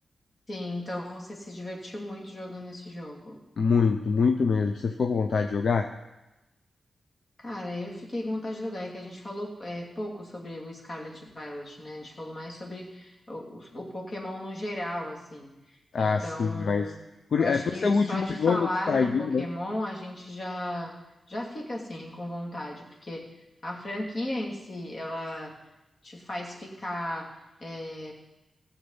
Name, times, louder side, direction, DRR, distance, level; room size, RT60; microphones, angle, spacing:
voice 1, 0.5-3.4 7.4-17.0 17.4-20.9 21.3-25.5 26.0-27.3 27.6-28.1, left 1 dB, 50° left, 0 dB, 2.7 m, -36 dB
voice 2, 3.6-5.9 15.9-16.9 17.3-19.5, left 5 dB, 75° left, 6 dB, 0.6 m, -25 dB
15.5 x 7.1 x 5.6 m, 1.0 s
cardioid pair, 50°, 0 cm